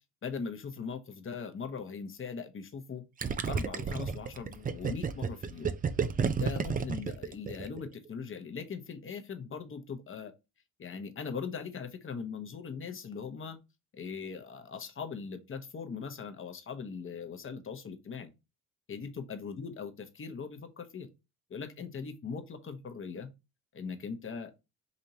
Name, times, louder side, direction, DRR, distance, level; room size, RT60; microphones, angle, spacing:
voice 1, 0.2-3.0 3.5-5.8 6.4-10.3 10.8-13.6 13.9-18.3 18.9-21.1 21.5-23.3 23.7-24.5, left 5 dB, 35° left, 0.9 m, -40 dB
Gurgling, 3.2-7.9, right 6 dB, 25° right, 0.4 m, -31 dB
5.1 x 2.8 x 2.7 m
cardioid pair, 80°, 36 cm